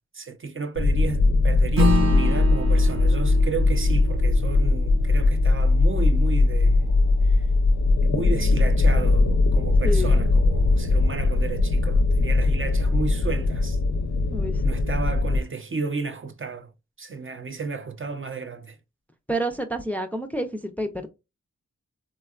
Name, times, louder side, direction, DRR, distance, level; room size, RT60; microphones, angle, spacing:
voice 1, 0.1-6.9 7.2-7.4 8.0-13.8 14.6-16.7 17.0-18.8, right 4 dB, 45° right, 0.5 m, -33 dB
sound 1, 0.8-15.4, left 2 dB, 80° left, 0.5 m, -20 dB
Acoustic guitar / Strum, 1.8-6.5, equal, 70° right, 0.8 m, -29 dB
voice 2, 9.8-10.2 14.3-14.6 19.3-21.1, right 1 dB, 5° left, 0.4 m, -29 dB
3.5 x 2.2 x 2.3 m
wide cardioid pair, 60°, 29 cm